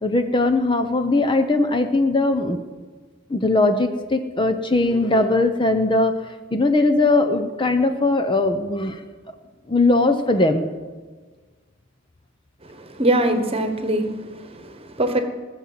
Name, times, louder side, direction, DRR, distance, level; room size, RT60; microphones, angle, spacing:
voice 1, 0.0-2.6 3.3-6.2 6.5-9.0 9.7-10.7, left 2 dB, 25° left, 7 dB, 0.8 m, -19 dB
voice 2, 12.6-15.2, right 1 dB, 30° right, 7 dB, 1.3 m, -23 dB
18.5 x 7.3 x 7.6 m, 1.4 s
head